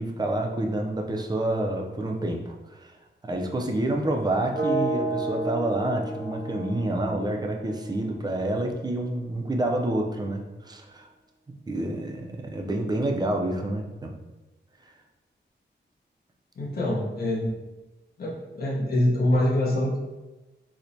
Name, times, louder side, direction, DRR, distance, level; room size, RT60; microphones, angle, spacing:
voice 1, 0.0-2.5 2.8-2.9 3.2-11.1 11.7-14.1, right 1 dB, 20° right, 1 dB, 0.3 m, -28 dB
sound 1, 4.5-8.5, right 2 dB, 65° right, 0.7 m, -31 dB
voice 2, 16.6-17.5 18.2-20.0, left 1 dB, 50° left, -5 dB, 0.7 m, -25 dB
4.3 x 2.1 x 2.6 m, 1.1 s
wide cardioid pair, 145°, 19 cm